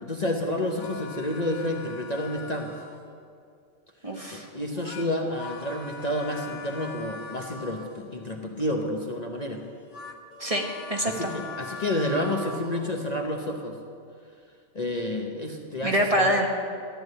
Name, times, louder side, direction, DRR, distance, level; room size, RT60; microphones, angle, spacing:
voice 1, 0.0-2.7 4.3-9.6 11.0-13.8 14.7-16.3, left 1 dB, 35° left, 1 dB, 1.0 m, -30 dB
sound 1, 0.6-3.2 4.6-8.3 9.5-13.2, left 4 dB, 60° left, 1.3 m, -42 dB
voice 2, 4.0-4.5 10.4-11.3 15.8-16.5, equal, 25° right, 1 dB, 1.2 m, -25 dB
13.5 x 10.5 x 7.9 m, 2.3 s
omnidirectional pair, 1.4 m